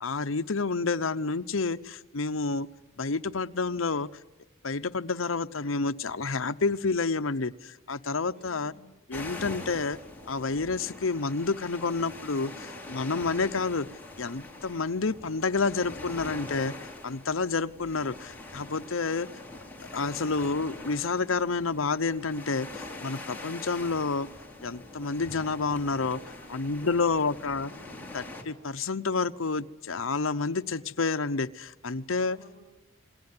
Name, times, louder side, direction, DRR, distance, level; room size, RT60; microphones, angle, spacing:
voice 1, 0.0-2.7 3.0-4.1 4.6-8.7 9.1-10.0 10.3-13.9 14.2-16.7 17.0-19.3 19.9-24.3 24.6-26.2 26.5-27.7 28.1-32.4, left 4 dB, 75° left, 11 dB, 0.9 m, -29 dB
voice 2, 8.3-8.9 20.1-20.5 26.0-28.1 32.2-32.6, right 1 dB, 40° right, 7 dB, 5.3 m, -54 dB
sound 1, 9.1-28.4, left 2 dB, 10° left, 3.7 m, -43 dB
28.5 x 21.5 x 9.6 m, 1.0 s
head